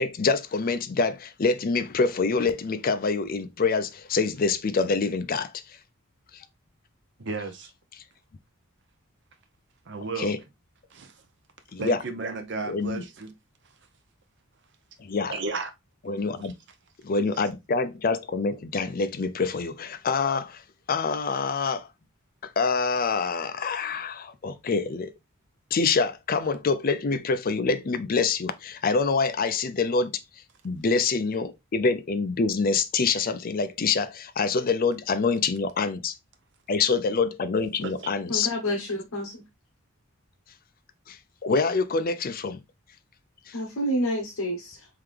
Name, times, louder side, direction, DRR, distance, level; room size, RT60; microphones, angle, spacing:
voice 1, 0.0-5.5 10.2-10.4 11.7-12.0 12.7-13.0 15.0-15.3 16.1-16.5 17.0-20.6 20.9-21.9 22.4-25.1 25.7-30.2 30.6-36.1 36.7-38.5 41.1-41.2 41.4-42.6 43.5-43.6, left 4 dB, 40° left, 0.4 m, -26 dB
voice 2, 7.2-7.7 9.9-10.3 10.9-11.1 11.8-13.3 15.3-15.7 16.4-16.5 37.8-38.1, right 3 dB, 55° right, 0.7 m, -33 dB
voice 3, 38.3-39.4 43.5-44.9, equal, 75° left, 0.9 m, -29 dB
3.7 x 3.4 x 3.3 m
head